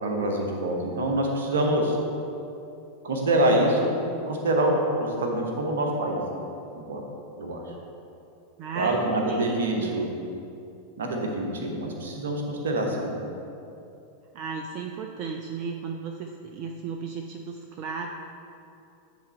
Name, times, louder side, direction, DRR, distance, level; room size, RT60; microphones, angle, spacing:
voice 1, 0.0-2.0 3.0-3.9 4.3-6.2 6.7-7.0 7.4-7.6 8.7-10.1 11.0-13.1, right 1 dB, 65° right, 1 dB, 0.9 m, -25 dB
voice 2, 8.6-10.1 14.3-18.1, right 5 dB, 40° right, 3 dB, 0.4 m, -34 dB
9.4 x 3.5 x 4.3 m, 2.7 s
figure-of-eight pair, 90°, 0 cm